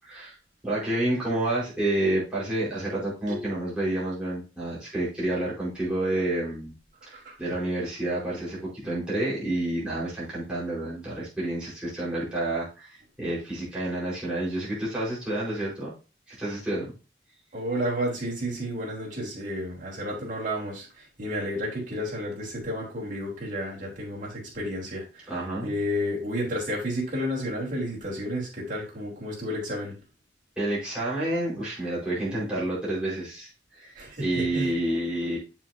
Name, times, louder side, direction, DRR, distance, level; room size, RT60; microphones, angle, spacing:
voice 1, 0.0-0.3 0.6-6.7 7.1-15.9 16.3-16.9 25.3-25.7 30.6-35.4, right 1 dB, 5° right, -9 dB, 4.9 m, -29 dB
voice 2, 17.5-20.9 21.2-25.3 25.6-30.0 34.0-34.7, equal, 45° right, -4 dB, 3.8 m, -31 dB
7.4 x 7.3 x 2.8 m, 0.32 s
head